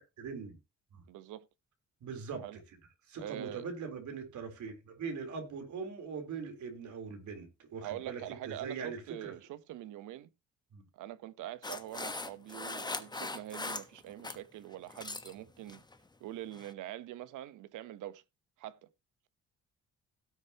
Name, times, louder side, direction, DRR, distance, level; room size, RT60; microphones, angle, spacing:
voice 1, 0.2-0.6 0.9-1.0 2.0-2.6 3.1-9.3 10.7-10.9, right 5 dB, 70° right, 3.8 m, -41 dB
voice 2, 1.1-1.4 2.4-2.6 3.2-3.7 7.8-10.3 10.9-15.8 16.2-18.2 18.6-18.9, right 13 dB, 85° right, 1.0 m, -44 dB
sound 1, 11.6-14.4 14.7-15.3 15.7-16.0 16.5-16.7, left 3 dB, 15° left, 1.1 m, -40 dB
17.0 x 6.7 x 2.9 m
cardioid pair, 90°, 30 cm